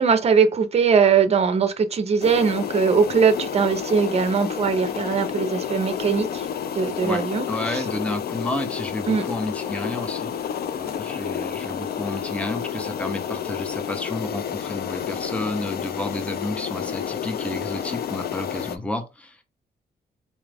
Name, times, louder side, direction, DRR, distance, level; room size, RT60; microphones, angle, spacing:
voice 1, 0.0-6.5 6.7-7.8 9.1-9.2, right 6 dB, 40° right, 0.6 m, -20 dB
sound 1, 2.2-18.8, left 9 dB, 65° left, 0.4 m, -30 dB
voice 2, 7.0-10.3 10.7-19.4, left 2 dB, 5° left, 0.6 m, -31 dB
4.1 x 2.4 x 3.4 m
wide cardioid pair, 130°, 17 cm